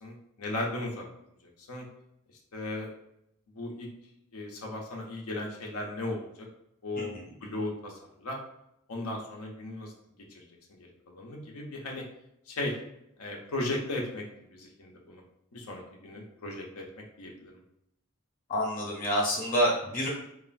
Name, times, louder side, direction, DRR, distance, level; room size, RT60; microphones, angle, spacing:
voice 1, 0.0-1.0 1.4-1.9 2.5-2.9 3.5-3.9 4.3-6.5 6.8-7.1 7.4-8.4 8.9-9.9 10.3-10.4 11.1-12.0 12.5-12.7 13.2-14.2 14.5-15.2 15.5-16.8 17.2-17.6, left 2 dB, 85° left, 0 dB, 0.6 m, -36 dB
voice 2, 18.5-20.1, equal, 40° left, -3 dB, 0.8 m, -28 dB
3.1 x 2.4 x 2.4 m, 0.79 s
head